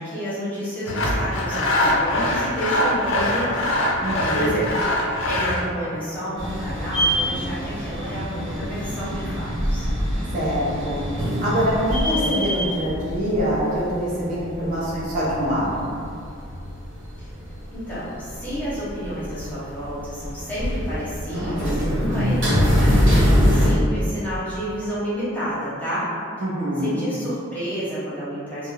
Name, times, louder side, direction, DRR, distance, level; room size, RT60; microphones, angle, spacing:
voice 1, 0.0-3.8 4.3-4.6 5.3-9.9 17.2-17.3 17.7-26.1 26.8-28.7, equal, 10° left, -11 dB, 0.9 m, -30 dB
Sawing, 0.9-5.7, left 1 dB, 65° left, 0.4 m, -23 dB
voice 2, 4.0-4.5 10.3-11.0 11.4-15.9 26.4-27.1, equal, 40° right, -8 dB, 0.6 m, -24 dB
sound 1, 6.4-23.7, equal, 70° right, 1.3 m, -24 dB
2.5 x 2.1 x 3.7 m, 2.3 s
head